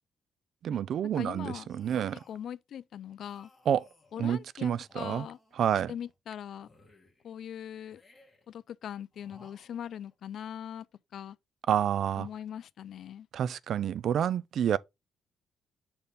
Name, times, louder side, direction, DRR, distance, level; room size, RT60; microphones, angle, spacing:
voice 1, 0.6-2.2 3.7-3.8 4.2-5.3 5.6-5.9 11.7-12.3 13.3-14.8, right 9 dB, 60° right, 0.3 m, -28 dB
voice 2, 1.2-1.7 2.3-3.5 4.1-5.4 5.9-6.7 7.2-8.0 8.5-10.9 11.1-11.4 12.2-13.3, left 9 dB, 60° left, 0.3 m, -41 dB
sound 1, 1.7-2.5 3.2-4.3 4.8-6.2 6.6-7.4 7.9-8.6 9.1-10.1, left 2 dB, 15° left, 2.0 m, -60 dB
6.8 x 4.1 x 3.5 m
cardioid pair, 145°, 0 cm